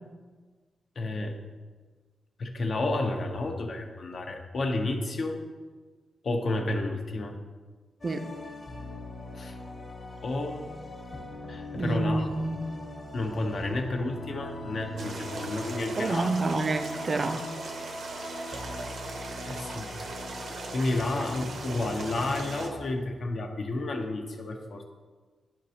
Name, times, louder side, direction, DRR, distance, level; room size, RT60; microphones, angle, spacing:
voice 1, 1.0-1.4 2.4-5.4 6.2-7.4 9.4-9.6 10.2-10.7 11.5-12.3 13.1-16.3 19.5-20.0 20.4-24.8, left 2 dB, 50° left, 3 dB, 0.7 m, -31 dB
sound 1, 8.0-22.8, left 1 dB, 30° left, 1.0 m, -41 dB
voice 2, 11.7-12.6 16.0-17.5, right 2 dB, 30° right, 8 dB, 0.4 m, -28 dB
sound 2, 15.0-22.7, right 3 dB, 70° right, 0.8 m, -40 dB
11.0 x 4.1 x 2.8 m, 1.4 s
wide cardioid pair, 170°, 0 cm